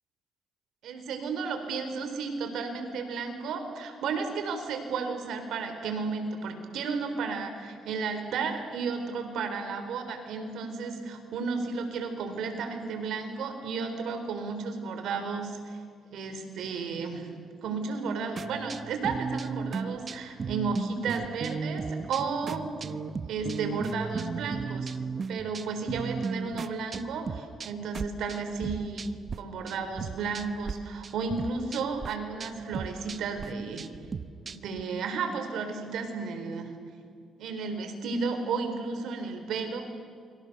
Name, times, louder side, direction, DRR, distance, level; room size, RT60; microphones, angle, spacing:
voice 1, 0.8-15.8 16.1-17.3 17.6-22.7 23.2-25.0 25.3-33.9 34.5-36.7 37.4-39.8, right 4 dB, 80° right, 6 dB, 4.0 m, -33 dB
sound 1, 18.4-29.4 29.7-30.7 31.0-34.8, right 5 dB, 40° right, 1.0 m, -36 dB
29.0 x 23.5 x 6.8 m, 2.2 s
cardioid pair, 90°, 0 cm